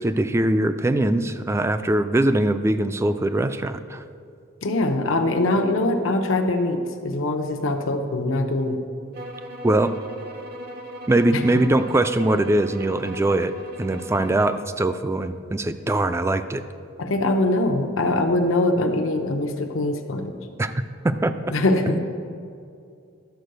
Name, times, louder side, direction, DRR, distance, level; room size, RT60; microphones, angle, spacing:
voice 1, 0.0-4.0 9.6-9.9 11.1-13.5 13.8-16.6 20.6-20.7 21.0-21.5 21.9-22.0, right 1 dB, 15° right, 11 dB, 0.3 m, -22 dB
voice 2, 4.6-8.8 11.3-11.4 17.0-20.3 21.5-22.0, left 2 dB, 85° left, 5 dB, 0.8 m, -22 dB
sound 1, 9.1-14.7, equal, 50° right, 0.9 m, -39 dB
11.5 x 4.6 x 6.6 m, 2.5 s
head